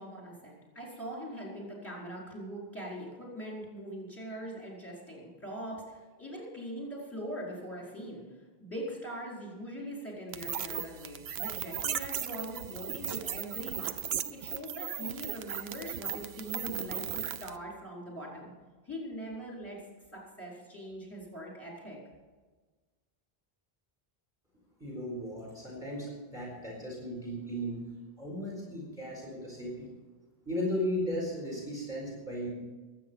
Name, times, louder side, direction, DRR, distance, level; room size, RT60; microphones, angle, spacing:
voice 1, 0.0-8.2 8.6-14.0 14.3-18.5 18.8-19.8 20.1-22.0, equal, 15° left, -4 dB, 4.8 m, -42 dB
sound 1, 10.3-17.6, right 9 dB, 80° right, 0.9 m, -37 dB
voice 2, 24.8-27.8 28.2-29.9 30.5-32.5, equal, 5° right, -3 dB, 4.1 m, -36 dB
22.0 x 8.6 x 5.6 m, 1.3 s
omnidirectional pair, 1.0 m